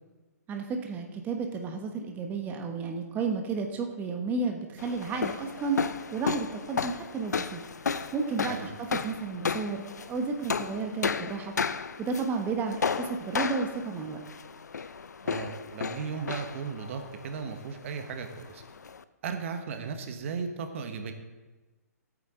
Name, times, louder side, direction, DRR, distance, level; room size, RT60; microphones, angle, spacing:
voice 1, 0.5-5.8 6.1-7.6 8.1-11.5 12.0-14.2, right 4 dB, 20° right, 4 dB, 1.1 m, -32 dB
sound 1, 4.8-19.0, left 5 dB, 75° left, 0.5 m, -34 dB
voice 2, 15.2-18.6 19.2-21.1, right 5 dB, 50° right, 7 dB, 1.2 m, -36 dB
16.0 x 9.0 x 3.8 m, 1.2 s
figure-of-eight pair, 130°, 9 cm